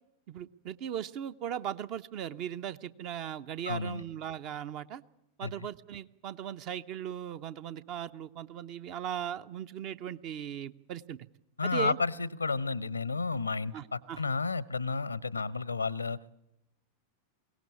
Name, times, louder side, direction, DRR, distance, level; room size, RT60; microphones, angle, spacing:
voice 1, 0.3-5.0 5.4-11.2 11.6-12.0 13.7-14.2 15.4-15.5, right 9 dB, 40° right, 13 dB, 0.7 m, -38 dB
voice 2, 3.7-4.0 5.4-5.5 11.6-16.2, left 4 dB, 80° left, 22 dB, 0.7 m, -32 dB
22.5 x 18.0 x 8.4 m, 0.86 s
figure-of-eight pair, 90°, 0 cm